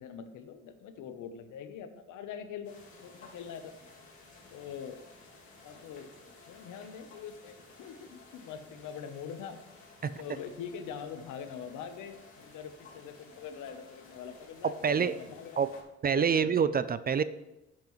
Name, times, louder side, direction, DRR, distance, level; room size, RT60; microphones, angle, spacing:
voice 1, 0.0-2.7 3.0-3.7 4.5-5.0 5.6-6.1 6.5-15.7 16.2-16.5, left 7 dB, 85° left, 9 dB, 0.9 m, -43 dB
sound 1, 2.6-15.8, left 3 dB, 45° left, 2.4 m, -55 dB
voice 2, 14.8-15.1 15.6-15.7 16.0-17.2, right 6 dB, 30° right, 14 dB, 0.4 m, -26 dB
10.5 x 7.4 x 3.1 m, 0.96 s
cardioid pair, 90°, 30 cm